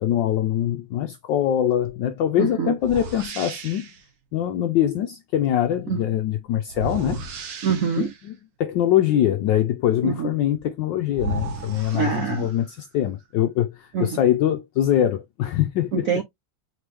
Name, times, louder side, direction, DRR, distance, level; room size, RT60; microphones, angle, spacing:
voice 1, 0.0-3.9 4.3-7.2 8.0-16.2, left 11 dB, 75° left, 1.1 m, -23 dB
sound 1, 1.8-2.0 2.8-4.0 6.7-8.3 10.6-10.7 11.1-12.7, right 4 dB, 55° right, 1.1 m, -34 dB
voice 2, 2.4-2.7 5.9-6.0 7.6-8.1 10.0-10.3 11.9-12.5 13.9-14.1 15.9-16.2, right 7 dB, 75° right, 0.7 m, -24 dB
4.3 x 3.1 x 3.3 m
omnidirectional pair, 2.4 m